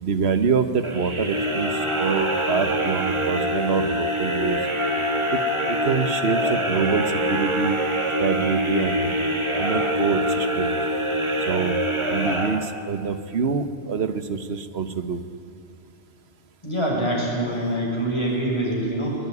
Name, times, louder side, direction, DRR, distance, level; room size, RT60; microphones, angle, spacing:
voice 1, 0.0-4.6 5.3-7.8 8.2-9.1 9.6-10.8 11.5-11.8 12.1-15.2, right 5 dB, 70° right, 10 dB, 1.4 m, -26 dB
sound 1, 0.8-13.1, equal, 25° right, 1.6 m, -24 dB
voice 2, 16.6-19.2, right 1 dB, 25° left, -3 dB, 6.7 m, -25 dB
21.5 x 20.5 x 9.8 m, 2.3 s
omnidirectional pair, 1.1 m